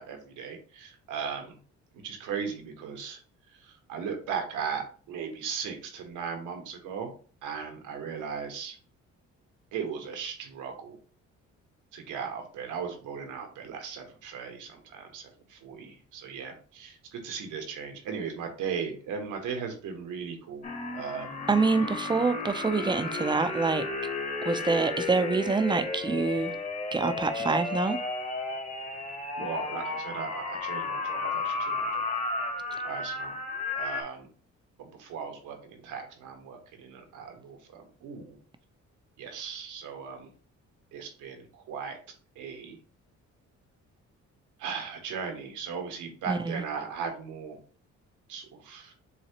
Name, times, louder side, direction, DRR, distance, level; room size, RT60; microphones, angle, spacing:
voice 1, 0.0-1.6 2.0-3.2 3.6-7.1 7.4-8.7 9.7-11.0 11.9-20.7 20.9-21.4 29.4-32.0 32.8-33.4 33.7-34.3 34.8-38.4 39.2-40.3 40.9-42.0 42.4-42.8 44.6-47.6 48.3-48.9, right 6 dB, 90° right, 1.3 m, -37 dB
sound 1, 20.6-34.0, left 3 dB, 25° left, 1.1 m, -33 dB
voice 2, 21.5-23.9 24.4-26.5 26.9-28.0 46.3-46.6, right 4 dB, 15° right, 0.5 m, -26 dB
7.1 x 2.4 x 2.9 m
cardioid pair, 90°, 30 cm